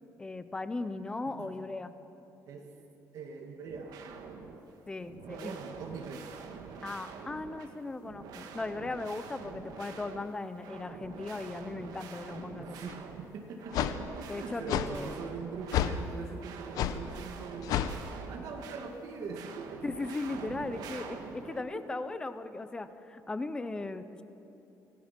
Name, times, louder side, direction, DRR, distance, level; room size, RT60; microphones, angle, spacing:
voice 1, 0.2-1.9 4.9-5.6 6.8-12.9 14.3-15.1 19.8-24.2, left 2 dB, 15° left, 11 dB, 0.7 m, -37 dB
voice 2, 3.1-4.4 5.3-6.3 12.6-18.0 18.3-19.8 21.6-21.7, right 5 dB, 60° right, 1 dB, 2.1 m, -42 dB
sound 1, 3.6-4.6 5.0-7.7 8.0-10.3 10.6-16.0 16.3-18.9 19.2-21.6, right 6 dB, 80° right, 1.8 m, -46 dB
sound 2, 12.9-13.0 13.7-14.0 14.7-14.9 15.7-16.0 16.8-17.0 17.7-17.9, left 11 dB, 70° left, 0.9 m, -29 dB
25.0 x 17.0 x 6.0 m, 2.9 s
cardioid pair, 175°, 7 cm